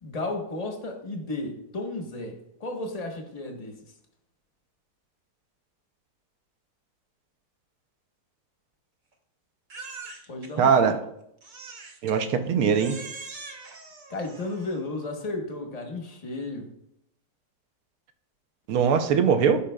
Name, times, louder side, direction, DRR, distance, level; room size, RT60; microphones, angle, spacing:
voice 1, 0.0-3.8 10.3-11.0 14.1-16.7 19.1-19.2, left 2 dB, 30° left, 4 dB, 0.8 m, -34 dB
Crying sobbing, 9.7-10.5 11.4-12.2 12.7-14.8, right 4 dB, 45° right, 0.6 m, -42 dB
voice 2, 10.6-11.0 12.0-13.0 18.7-19.6, right 6 dB, 70° right, 9 dB, 1.0 m, -21 dB
12.5 x 5.0 x 2.3 m, 0.77 s
omnidirectional pair, 1.8 m